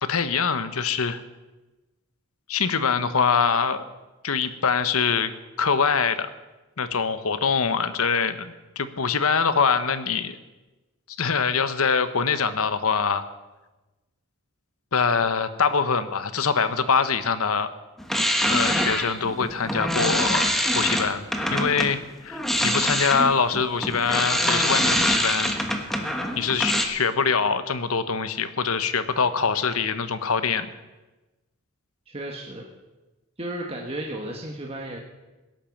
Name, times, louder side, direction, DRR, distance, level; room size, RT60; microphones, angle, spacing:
voice 1, 0.0-1.2 2.5-3.8 4.2-5.3 5.6-6.3 6.8-10.4 11.2-13.2 14.9-17.7 18.4-20.5 20.7-25.5 25.8-26.0 26.4-30.7, left 5 dB, 80° left, 11 dB, 1.0 m, -24 dB
sound 1, 18.0-21.9 22.3-26.8, equal, ahead, 1.2 m, -24 dB
voice 2, 32.1-32.7 33.4-35.0, right 1 dB, 25° right, 0 dB, 1.4 m, -33 dB
16.5 x 10.5 x 7.2 m, 1.1 s
head